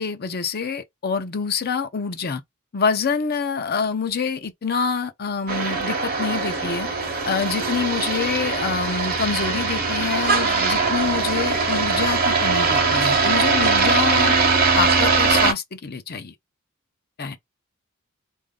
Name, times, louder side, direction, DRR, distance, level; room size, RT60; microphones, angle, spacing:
voice 1, 0.0-2.4 2.7-6.9 7.2-14.3 14.8-16.3 17.2-17.4, left 5 dB, 45° left, 0.6 m, -26 dB
sound 1, 5.5-15.5, right 4 dB, 45° right, 0.9 m, -21 dB
4.1 x 2.6 x 3.6 m
head